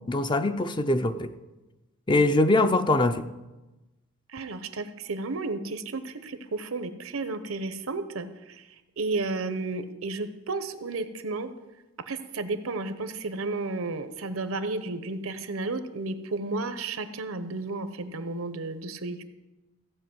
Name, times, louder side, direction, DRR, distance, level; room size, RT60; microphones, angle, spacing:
voice 1, 0.1-1.3 2.1-3.3, left 2 dB, 20° left, 10 dB, 0.5 m, -23 dB
voice 2, 4.3-8.7 9.0-11.5 12.1-19.2, right 3 dB, 80° right, 11 dB, 0.9 m, -32 dB
15.5 x 5.1 x 7.8 m, 1.1 s
head